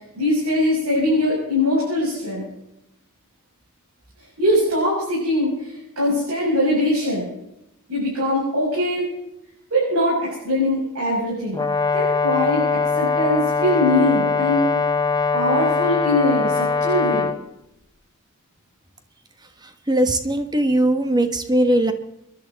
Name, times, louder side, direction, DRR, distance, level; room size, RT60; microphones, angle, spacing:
voice 1, 0.2-2.5 4.4-7.3 7.9-9.1 9.7-11.7 11.9-14.7 15.3-17.3, left 1 dB, 75° right, -6 dB, 7.2 m, -22 dB
Brass instrument, 11.5-17.4, left 4 dB, 20° left, 0.7 m, -21 dB
voice 2, 19.9-21.9, right 1 dB, 20° right, 7 dB, 1.3 m, -19 dB
29.5 x 11.5 x 4.1 m, 0.83 s
head